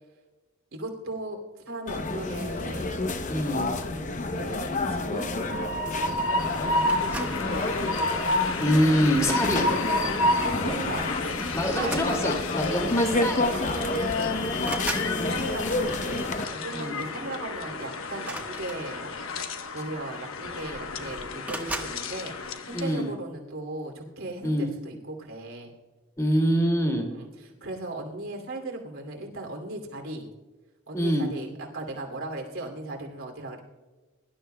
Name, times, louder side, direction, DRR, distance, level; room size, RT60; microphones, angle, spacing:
voice 1, 0.7-3.0 3.8-5.3 5.9-7.9 9.9-12.0 13.5-14.9 15.2-16.4 16.6-19.2 19.7-25.7 27.1-27.3 27.6-30.3 30.9-33.6, right 2 dB, 85° right, 2 dB, 2.7 m, -37 dB
sound 1, 1.9-16.5, left 2 dB, 35° left, 0.8 m, -29 dB
voice 2, 3.3-3.7 8.6-9.7 10.7-10.9 11.5-13.7 14.3-14.5 16.7-17.0 22.7-23.1 24.4-24.7 26.2-27.1 30.9-31.3, equal, 15° left, 2 dB, 2.1 m, -25 dB
Train, 5.2-23.0, left 2 dB, 75° left, 1.0 m, -31 dB
sound 2, 6.9-7.5 8.4-8.7 10.2-10.4 10.7-10.8 11.7-12.6 13.6-13.7 14.0-15.2 18.1-19.2 20.1-20.2 20.5-21.0 21.4-22.0, right 2 dB, 5° right, 1.2 m, -37 dB
22.5 x 12.0 x 2.2 m, 1.3 s
head